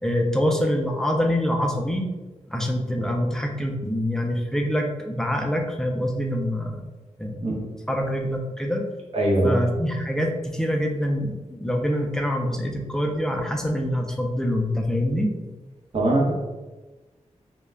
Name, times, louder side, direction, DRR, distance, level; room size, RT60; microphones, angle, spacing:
voice 1, 0.0-2.0 2.5-6.8 7.2-7.4 7.9-8.8 9.4-15.3, equal, 5° left, 2 dB, 0.3 m, -25 dB
voice 2, 9.1-9.6 15.9-16.3, right 1 dB, 50° right, -3 dB, 0.8 m, -21 dB
2.2 x 2.1 x 3.3 m, 1.2 s
wide cardioid pair, 100°, 12 cm